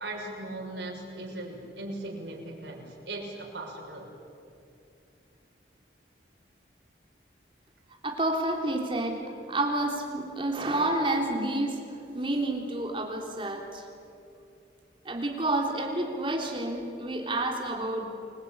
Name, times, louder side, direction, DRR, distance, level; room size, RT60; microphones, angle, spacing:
voice 1, 0.0-4.1, right 2 dB, 90° right, 0 dB, 6.4 m, -38 dB
voice 2, 8.0-9.2 9.5-13.9 15.0-18.1, right 2 dB, 30° right, 1 dB, 3.6 m, -29 dB
29.0 x 21.5 x 8.8 m, 2.6 s
head